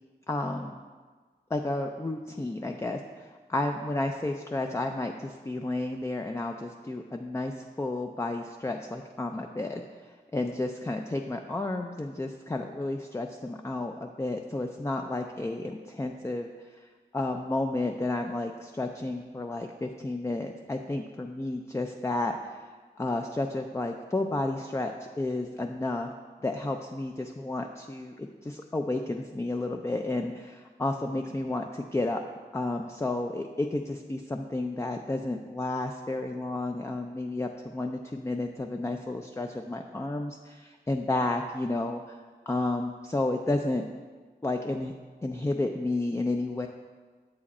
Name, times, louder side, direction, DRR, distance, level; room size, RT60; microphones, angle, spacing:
voice 1, 0.3-0.8 1.5-16.5 17.1-22.7 23.0-26.1 26.4-32.2 32.5-43.9 44.4-44.9 45.2-46.7, left 2 dB, 15° left, 4 dB, 0.4 m, -32 dB
7.2 x 4.9 x 4.2 m, 1.5 s
cardioid pair, 40°, 18 cm